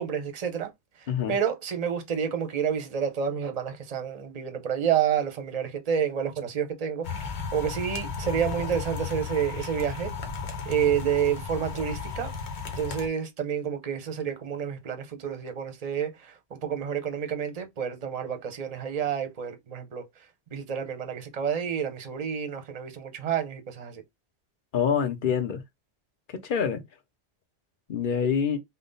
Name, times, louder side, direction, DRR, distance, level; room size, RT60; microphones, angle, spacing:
voice 1, 0.0-10.1 10.6-12.3 12.8-24.0, right 8 dB, 40° right, 0.7 m, -29 dB
sound 1, 7.0-13.1, left 5 dB, 65° left, 1.1 m, -34 dB
voice 2, 24.7-25.6 26.3-26.8 27.9-28.6, left 7 dB, 50° left, 0.8 m, -26 dB
3.6 x 2.2 x 3.8 m
omnidirectional pair, 1.2 m